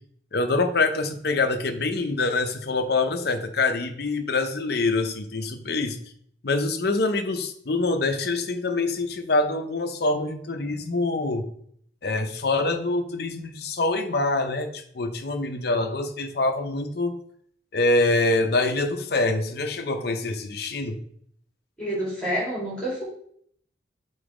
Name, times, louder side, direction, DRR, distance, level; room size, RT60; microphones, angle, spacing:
voice 1, 0.3-6.0 6.4-11.4 12.0-17.1 17.7-21.0, left 2 dB, 55° left, 6 dB, 0.7 m, -25 dB
voice 2, 21.8-23.0, equal, 5° left, -6 dB, 3.3 m, -28 dB
7.1 x 4.0 x 5.0 m, 0.65 s
head